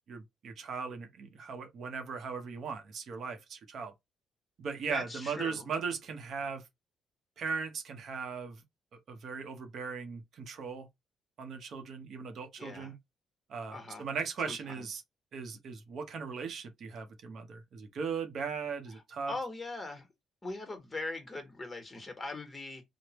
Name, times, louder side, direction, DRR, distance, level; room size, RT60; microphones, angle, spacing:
voice 1, 0.1-3.9 4.6-6.6 7.4-8.6 9.1-10.9 11.4-13.0 13.5-15.0 15.3-19.3, right 5 dB, 65° right, 0.7 m, -38 dB
voice 2, 4.9-5.7 12.6-12.9 13.7-14.1 14.4-14.9 19.3-20.1 20.4-22.8, left 2 dB, 20° left, 1.2 m, -41 dB
3.3 x 2.1 x 2.9 m
cardioid pair, 90°, 0 cm